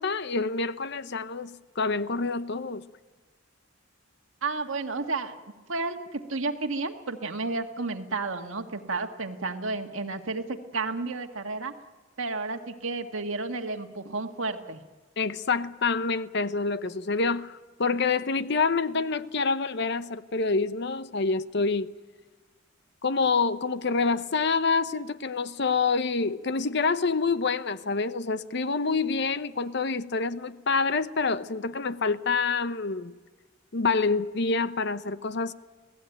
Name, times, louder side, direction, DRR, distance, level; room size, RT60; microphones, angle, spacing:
voice 1, 0.0-2.9 15.2-21.9 23.0-33.1 33.7-35.5, left 4 dB, 55° left, 0.8 m, -27 dB
voice 2, 4.4-5.4 5.7-11.7 12.2-14.8, right 3 dB, 80° right, 1.8 m, -32 dB
28.5 x 17.5 x 9.2 m
head